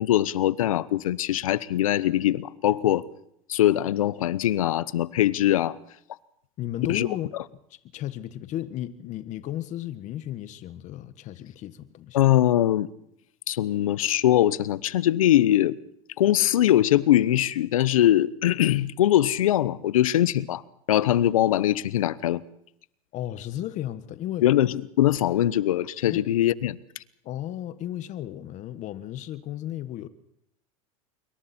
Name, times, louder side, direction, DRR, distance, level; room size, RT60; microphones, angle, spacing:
voice 1, 0.0-3.1 3.5-5.8 6.9-7.1 12.1-12.9 13.5-15.8 16.2-20.6 20.9-22.4 24.4-26.8, left 13 dB, 85° left, 0.9 m, -22 dB
voice 2, 6.6-7.4 7.9-12.2 23.1-24.5 26.1-26.2 27.2-30.1, left 12 dB, 45° left, 1.5 m, -34 dB
26.5 x 23.5 x 4.4 m
hypercardioid pair, 105°, 17 cm